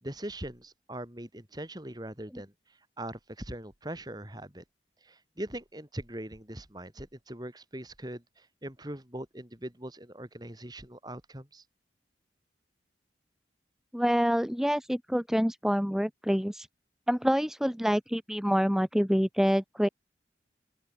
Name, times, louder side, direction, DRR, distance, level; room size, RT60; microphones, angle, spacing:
voice 1, 0.0-2.5 3.0-4.6 5.0-11.6, right 1 dB, 25° right, 3.4 m, -41 dB
voice 2, 13.9-16.7 17.1-19.9, equal, ahead, 1.5 m, -26 dB
open air
head